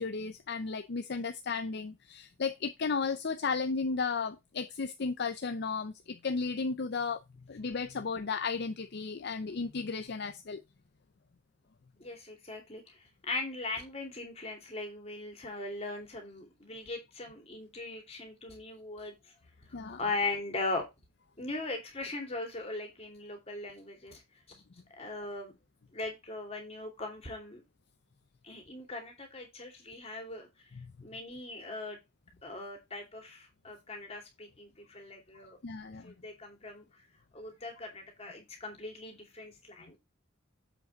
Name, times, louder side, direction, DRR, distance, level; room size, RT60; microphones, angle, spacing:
voice 1, 0.0-7.2 7.5-10.6 19.7-20.0 30.7-30.9 35.6-36.1, left 4 dB, 50° left, 0.5 m, -34 dB
voice 2, 12.0-19.1 19.7-20.8 21.4-24.2 24.5-24.6 25.0-25.5 25.9-27.6 28.4-30.5 31.0-32.0 32.4-35.6 36.0-36.9 37.3-40.0, left 2 dB, 30° left, 2.6 m, -39 dB
7.6 x 5.4 x 3.9 m
head